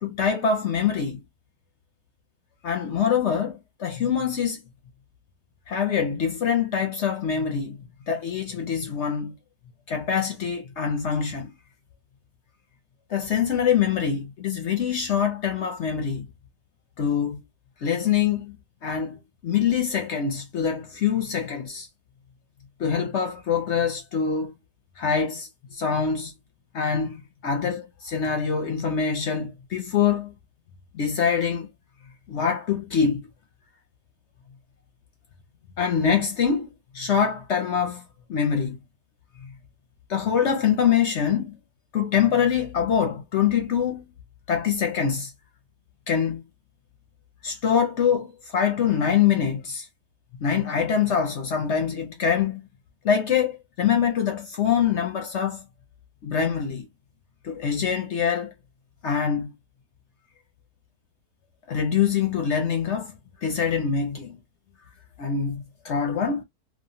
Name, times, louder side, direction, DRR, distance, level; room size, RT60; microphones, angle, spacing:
voice 1, 0.0-1.2 2.6-4.6 5.7-7.8 8.1-9.3 9.9-11.5 13.1-16.3 17.0-17.4 17.8-18.6 18.8-21.9 22.8-24.5 25.0-26.3 26.7-30.3 30.9-31.7 32.3-33.2 35.8-38.0 38.3-38.8 39.4-39.5 40.1-41.6 41.9-44.1 44.5-45.3 46.1-46.4 47.4-49.9 50.4-52.6 53.0-55.6 56.2-56.9 57.4-58.5 59.0-59.5 61.7-63.1 63.4-64.4 65.2-66.4, left 7 dB, 60° left, 0.8 m, -24 dB
3.0 x 2.3 x 2.6 m
omnidirectional pair, 1.6 m